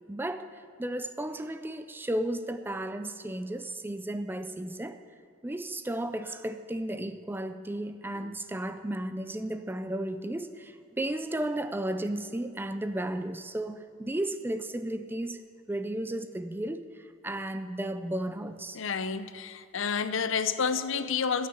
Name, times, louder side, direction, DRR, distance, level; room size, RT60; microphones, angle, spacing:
voice 1, 0.1-5.0 5.4-15.4 15.7-18.8, right 1 dB, 10° right, 0.4 m, -34 dB
voice 2, 18.7-21.5, left 6 dB, 65° left, 0.6 m, -29 dB
14.5 x 6.6 x 9.2 m
head